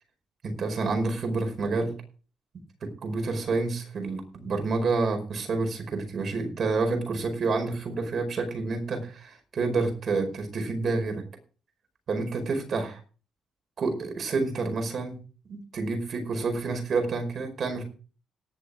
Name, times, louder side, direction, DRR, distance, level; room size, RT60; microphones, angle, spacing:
voice 1, 0.4-2.0 2.8-11.2 12.1-13.0 13.8-15.2 15.5-17.8, right 3 dB, 55° right, 5 dB, 5.0 m, -29 dB
18.0 x 7.2 x 5.0 m, 0.37 s
cardioid pair, 90°, 0 cm